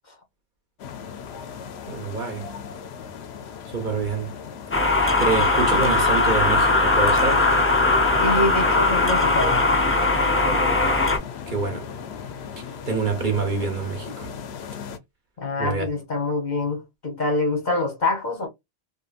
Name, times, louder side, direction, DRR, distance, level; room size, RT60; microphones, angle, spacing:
sound 1, 0.8-15.0, left 7 dB, 75° left, 0.8 m, -37 dB
voice 1, 1.9-2.4 3.7-4.3 5.2-7.5 10.7-11.0 11.5-11.9 12.9-14.3 15.6-15.8, right 4 dB, 50° right, 1.1 m, -26 dB
sound 2, 4.7-11.2, left 2 dB, 20° left, 0.4 m, -19 dB
voice 2, 8.2-9.6 15.4-18.5, left 2 dB, 45° left, 0.9 m, -25 dB
2.6 x 2.6 x 2.4 m
omnidirectional pair, 1.1 m